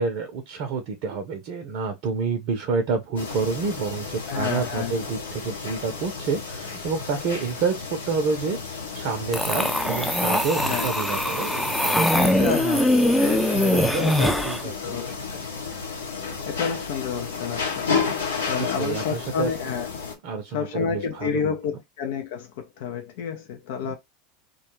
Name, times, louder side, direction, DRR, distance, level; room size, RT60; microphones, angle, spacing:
voice 1, 0.0-8.6 8.9-13.1 13.7-15.2 18.6-19.5 20.2-21.6 23.8-23.9, right 5 dB, 60° right, 0.6 m, -29 dB
sound 1, 3.2-20.2, left 5 dB, 85° left, 0.8 m, -32 dB
voice 2, 4.3-4.9 10.5-10.9 12.1-15.4 16.5-17.9 18.5-19.9 20.5-24.0, left 7 dB, 65° left, 0.5 m, -30 dB
sound 2, 9.3-14.6, left 1 dB, 5° left, 0.4 m, -22 dB
2.3 x 2.3 x 3.0 m
hypercardioid pair, 85°, 0 cm